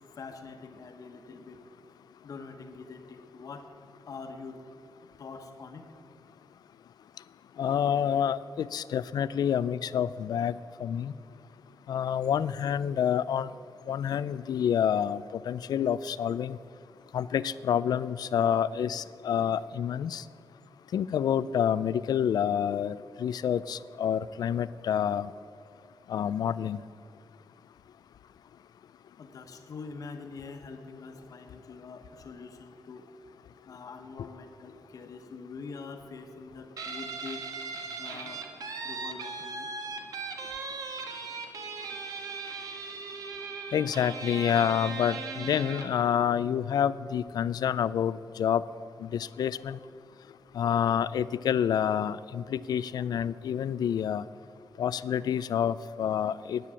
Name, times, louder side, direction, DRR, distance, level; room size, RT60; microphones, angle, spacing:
voice 1, 0.2-1.6 2.2-3.7 4.1-4.7 5.2-5.9 29.2-33.1 33.6-37.5 38.0-38.4 38.8-39.7, left 4 dB, 60° left, 6 dB, 1.3 m, -44 dB
voice 2, 7.6-11.1 11.9-13.5 13.9-16.6 17.1-20.2 20.9-25.3 26.1-26.8 43.7-48.6 49.0-49.8 50.5-54.2 54.8-56.6, left 9 dB, 75° left, 17 dB, 0.4 m, -28 dB
Guitar, 36.8-46.0, right 4 dB, 60° right, 1.4 m, -38 dB
10.0 x 9.2 x 8.3 m, 2.2 s
wide cardioid pair, 150°, 7 cm